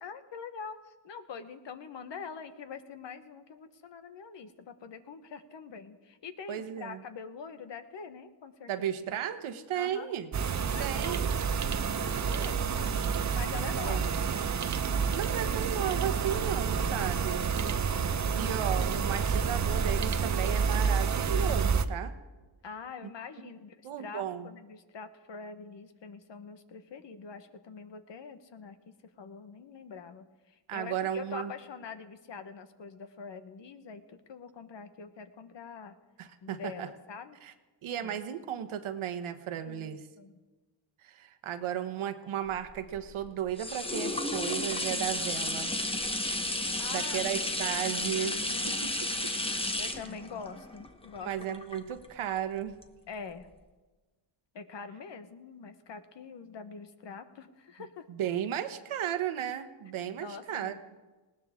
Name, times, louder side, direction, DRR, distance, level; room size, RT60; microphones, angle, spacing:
voice 1, 0.0-8.9 9.7-10.1 10.7-11.6 11.9-14.1 17.0-18.5 22.6-36.0 36.4-37.4 38.0-38.2 39.6-40.3 46.8-47.3 48.3-48.8 49.8-51.3 53.1-53.5 54.5-58.0 60.2-60.8, left 5 dB, 60° left, 9 dB, 1.3 m, -45 dB
voice 2, 6.5-7.0 8.7-10.3 10.8-11.3 13.8-14.1 15.1-17.4 18.3-22.1 23.0-23.1 23.8-24.5 30.7-31.5 36.2-36.9 37.4-37.5 37.8-40.0 41.0-45.7 46.6-48.4 48.7-48.9 51.2-52.7 58.1-60.8, right 10 dB, 75° right, 9 dB, 1.3 m, -34 dB
sound 1, 10.3-21.9, right 6 dB, 35° right, 0.8 m, -29 dB
sound 2, 42.5-52.3 52.8-52.9, left 1 dB, 10° left, 1.1 m, -33 dB
19.5 x 18.0 x 3.7 m, 1.2 s
cardioid pair, 100°, 50 cm